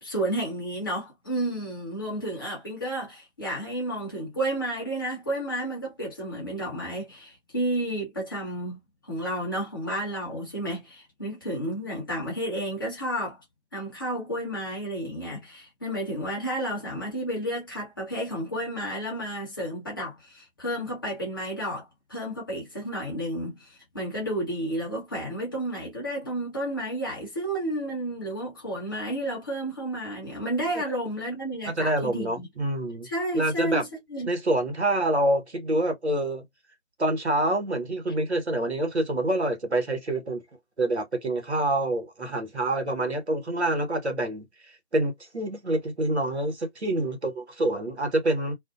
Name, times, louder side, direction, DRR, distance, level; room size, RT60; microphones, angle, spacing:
voice 1, 0.0-8.8 9.0-13.4 13.7-32.5 33.0-34.3, right 1 dB, 20° left, 0.9 m, -31 dB
voice 2, 31.7-33.1 33.3-33.8 34.3-36.4 37.0-40.4 40.8-44.5 44.9-48.5, right 1 dB, 75° right, 1.1 m, -26 dB
2.5 x 2.0 x 2.4 m
figure-of-eight pair, 155°, 34 cm